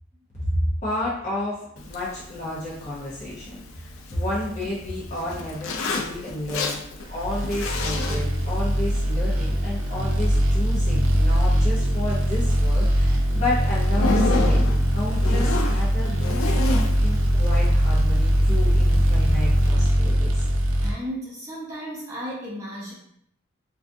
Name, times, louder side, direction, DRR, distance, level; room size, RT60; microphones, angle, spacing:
voice 1, 0.4-6.8 7.1-14.6 14.9-16.7 17.0-20.4, left 1 dB, 35° left, -7 dB, 0.6 m, -31 dB
Zipper (clothing), 1.8-19.7, left 3 dB, 90° left, 0.4 m, -33 dB
sound 1, 7.1-20.9, equal, 90° right, 0.4 m, -21 dB
voice 2, 20.8-22.9, equal, 15° right, -5 dB, 0.4 m, -34 dB
2.4 x 2.3 x 2.5 m, 0.72 s
head